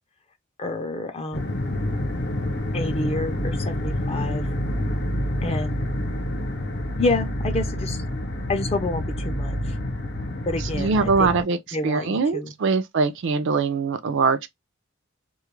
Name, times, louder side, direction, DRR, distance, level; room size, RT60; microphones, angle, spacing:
voice 1, 0.6-1.5 2.7-4.5 5.4-5.7 7.0-8.0 8.5-9.8 10.5-11.3 11.7-12.5, left 2 dB, 30° left, 0.5 m, -28 dB
sound 1, 1.3-11.4, left 1 dB, 60° left, 0.7 m, -27 dB
voice 2, 10.7-11.6 11.8-14.5, right 4 dB, 60° right, 0.4 m, -22 dB
2.3 x 2.1 x 3.0 m
head